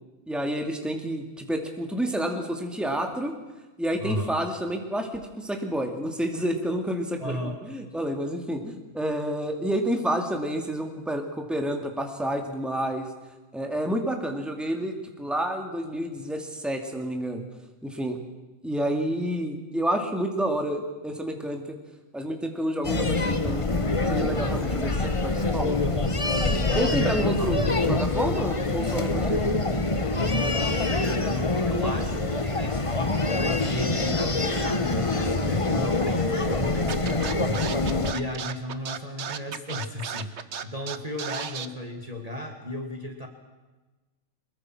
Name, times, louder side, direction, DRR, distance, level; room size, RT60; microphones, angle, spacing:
voice 1, 0.3-3.3 3.8-7.4 7.6-13.1 13.5-17.4 17.8-18.2 18.6-21.8 22.1-23.7 24.1-25.8 26.7-27.6 27.9-29.4, equal, ahead, 4 dB, 2.3 m, -29 dB
voice 2, 4.0-4.4 7.2-7.6 26.9-27.7 30.1-37.7 38.1-43.3, equal, 25° right, 3 dB, 2.0 m, -34 dB
sound 1, 22.8-38.1, left 2 dB, 25° left, 1.2 m, -25 dB
Scratching (performance technique), 36.9-41.7, right 7 dB, 55° right, 1.2 m, -34 dB
23.0 x 22.0 x 6.1 m, 1.2 s
omnidirectional pair, 1.4 m